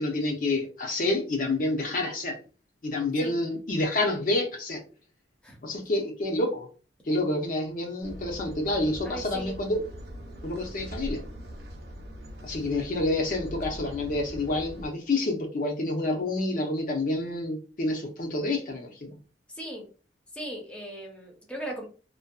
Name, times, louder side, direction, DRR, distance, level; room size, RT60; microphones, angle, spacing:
voice 1, 0.0-2.4 2.8-4.8 5.6-6.7 7.1-9.8 10.4-11.2 12.4-19.1, left 2 dB, 50° left, 1 dB, 0.5 m, -28 dB
sound 1, 8.0-14.9, equal, 60° right, 0.5 m, -41 dB
voice 2, 9.0-9.6 19.5-19.9 20.3-21.9, right 1 dB, 5° left, 0 dB, 0.6 m, -38 dB
2.5 x 2.1 x 2.2 m, 0.36 s
head